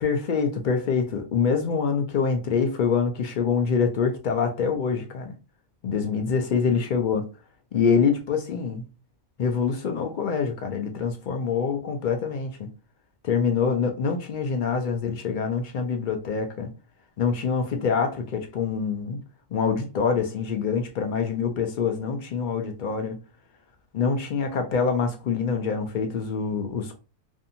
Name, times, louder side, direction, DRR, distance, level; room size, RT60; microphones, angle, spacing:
voice 1, 0.0-5.3 5.8-7.2 7.7-8.8 9.4-12.7 13.2-16.7 17.2-19.2 19.5-23.2 23.9-27.0, left 5 dB, 70° left, 0.4 m, -25 dB
2.6 x 2.5 x 2.6 m
omnidirectional pair, 1.3 m